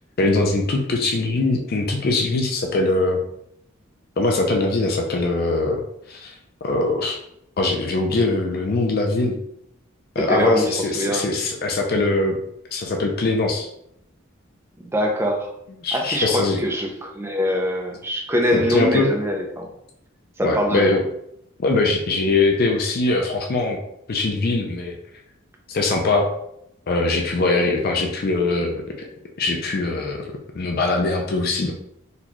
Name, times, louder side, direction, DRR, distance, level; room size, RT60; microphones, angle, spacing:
voice 1, 0.2-3.2 4.2-5.8 6.1-6.4 6.6-7.2 7.6-9.4 10.2-12.4 12.7-13.7 15.8-16.6 18.5-19.1 20.4-21.0 21.6-23.8 24.1-24.9 25.7-26.3 26.9-28.8 29.4-30.3 30.5-31.7, left 2 dB, 45° left, 1 dB, 0.4 m, -21 dB
voice 2, 10.2-11.4 14.8-15.5 15.9-19.7 20.4-21.0, equal, 10° right, 1 dB, 0.5 m, -23 dB
4.0 x 2.3 x 2.9 m, 0.76 s
head